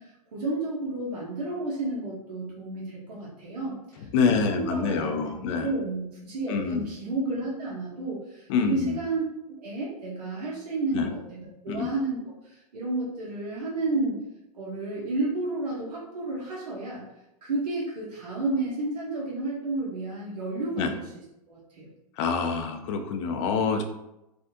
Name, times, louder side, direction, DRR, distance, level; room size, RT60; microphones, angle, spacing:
voice 1, 0.0-14.2 14.5-17.0 17.4-21.1 21.5-21.9, right 2 dB, 90° right, -5 dB, 0.9 m, -32 dB
voice 2, 4.1-5.7 6.5-6.9 8.5-9.0 10.9-11.1 11.7-11.9 20.8-20.9 22.2-23.8, left 5 dB, 45° left, 6 dB, 0.5 m, -26 dB
3.5 x 2.4 x 2.6 m, 0.89 s
hypercardioid pair, 135°, 20 cm